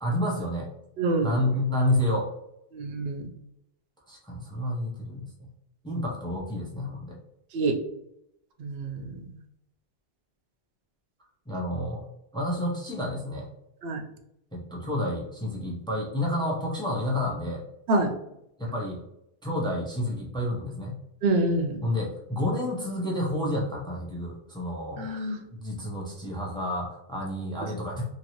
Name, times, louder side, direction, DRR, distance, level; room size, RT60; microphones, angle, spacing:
voice 1, 0.0-0.7 1.2-2.3 4.1-5.5 5.8-7.2 11.5-12.0 12.3-13.5 14.5-17.6 18.6-19.0 19.4-21.0 21.8-25.2 25.5-28.1, left 1 dB, 5° left, -2 dB, 0.4 m, -30 dB
voice 2, 1.0-1.4 2.7-3.2 7.5-7.8 8.6-9.2 13.8-14.0 17.9-18.1 21.2-21.8 25.0-25.4, right 2 dB, 75° right, 4 dB, 0.8 m, -26 dB
3.0 x 2.5 x 2.8 m, 0.82 s
omnidirectional pair, 1.1 m